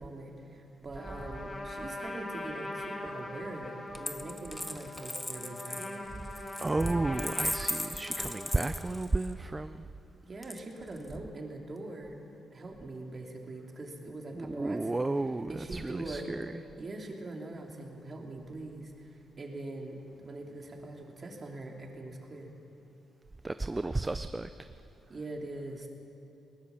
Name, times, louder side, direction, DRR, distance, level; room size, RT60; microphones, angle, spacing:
voice 1, 0.0-6.2 10.2-12.2 12.5-15.1 15.5-16.3 16.8-22.5 25.1-25.9, right 2 dB, 35° right, 1 dB, 2.9 m, -42 dB
Trumpet, 0.9-9.1, left 1 dB, 25° left, 2.5 m, -42 dB
Coin (dropping), 3.9-9.3 10.4-11.1, left 1 dB, 10° left, 1.1 m, -38 dB
voice 2, 6.6-9.8 14.4-16.5 23.4-24.5, right 2 dB, 15° right, 11 dB, 0.5 m, -32 dB
20.0 x 19.0 x 7.1 m, 2.9 s
cardioid pair, 115°, 0 cm